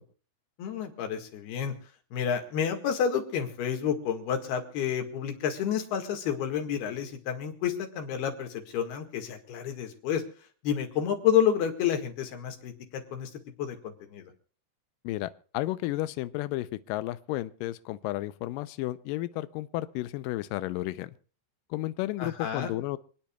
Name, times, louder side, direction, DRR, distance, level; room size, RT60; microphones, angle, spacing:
voice 1, 0.6-1.7 2.1-10.2 10.6-14.3 22.2-22.7, left 8 dB, 70° left, 5 dB, 3.7 m, -30 dB
voice 2, 15.0-21.1 21.7-23.0, left 16 dB, 85° left, 14 dB, 1.9 m, -32 dB
27.5 x 10.0 x 2.3 m, 0.43 s
omnidirectional pair, 4.8 m